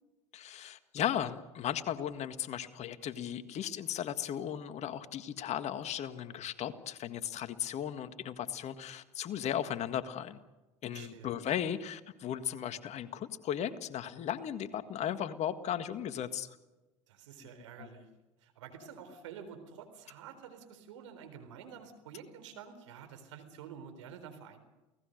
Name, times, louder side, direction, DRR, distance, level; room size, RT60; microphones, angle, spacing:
voice 1, 0.3-10.4 10.8-16.6 17.4-17.5, left 10 dB, 45° left, 11 dB, 1.8 m, -36 dB
voice 2, 10.9-11.3 17.1-18.1 18.4-24.6, right 7 dB, 75° right, 8 dB, 4.0 m, -49 dB
29.0 x 18.5 x 6.6 m, 1.1 s
hypercardioid pair, 75°, 16 cm